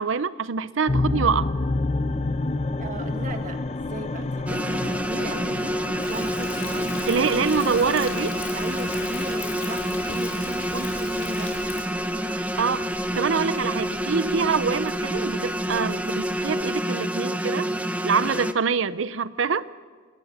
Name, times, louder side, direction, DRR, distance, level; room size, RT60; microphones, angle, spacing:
voice 1, 0.0-1.5 7.1-8.4 12.6-12.9 13.2-17.7 18.0-19.7, right 5 dB, 75° right, 0.6 m, -25 dB
sound 1, 0.9-16.6, left 2 dB, 35° left, 0.7 m, -31 dB
voice 2, 2.8-5.8 6.1-7.3 8.5-11.9 16.6-16.7, right 1 dB, 40° right, 1.8 m, -37 dB
sound 2, 4.5-18.5, equal, 10° right, 0.8 m, -28 dB
Thunder, 6.0-11.8, left 6 dB, 80° left, 4.7 m, -40 dB
27.5 x 20.0 x 6.5 m
head